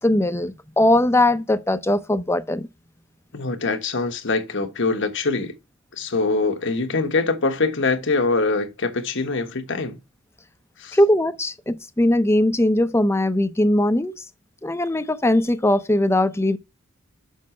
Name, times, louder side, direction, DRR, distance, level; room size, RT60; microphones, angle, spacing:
voice 1, 0.0-2.7 10.9-14.1 14.6-16.6, left 1 dB, 15° left, 0.6 m, -20 dB
voice 2, 3.3-5.5 6.0-10.0 10.8-11.0, left 3 dB, 60° left, 1.3 m, -23 dB
6.4 x 4.8 x 4.3 m
head